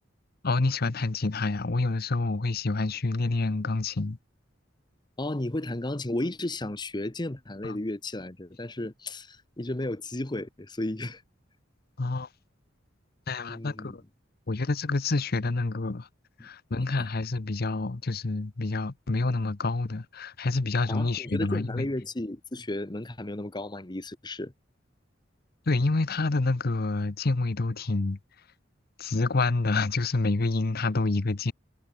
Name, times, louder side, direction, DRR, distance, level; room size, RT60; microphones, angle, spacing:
voice 1, 0.4-4.2 7.6-7.8 12.0-12.3 13.3-14.0 14.5-16.1 16.4-21.9 25.7-28.2 29.0-31.5, left 3 dB, 55° left, 0.8 m, -27 dB
voice 2, 5.2-11.2 13.5-14.0 16.4-16.5 17.0-17.1 20.9-24.5, left 1 dB, 25° left, 1.0 m, -33 dB
head